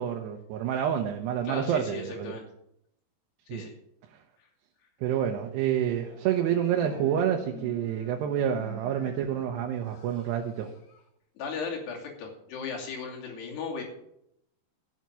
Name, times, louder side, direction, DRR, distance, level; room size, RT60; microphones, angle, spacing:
voice 1, 0.0-2.4 3.5-3.6 5.0-10.7, right 9 dB, 90° right, 2 dB, 3.1 m, -28 dB
voice 2, 1.4-2.5 3.5-3.7 11.4-13.8, left 5 dB, 80° left, 0 dB, 4.8 m, -36 dB
sound 1, 5.9-11.1, left 4 dB, 65° left, 3.7 m, -48 dB
15.0 x 7.7 x 6.9 m, 0.76 s
omnidirectional pair, 4.7 m